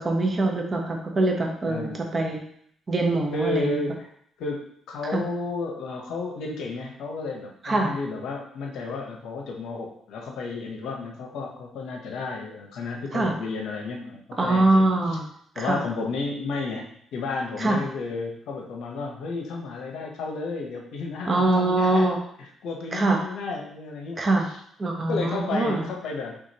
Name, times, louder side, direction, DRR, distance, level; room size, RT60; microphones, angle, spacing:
voice 1, 0.0-2.4 2.9-3.8 5.1-5.2 7.6-7.9 13.1-13.3 14.4-15.2 15.6-15.8 17.6-17.8 21.3-22.2 22.9-23.2 24.2-24.5 24.8-25.9, right 2 dB, 35° right, 2 dB, 0.9 m, -23 dB
voice 2, 1.6-2.0 3.3-4.1 4.4-15.2 15.5-22.1 22.4-24.2 25.1-26.4, left 3 dB, 80° left, 1 dB, 0.8 m, -32 dB
4.9 x 3.4 x 2.8 m, 0.67 s
cardioid pair, 90°, 0 cm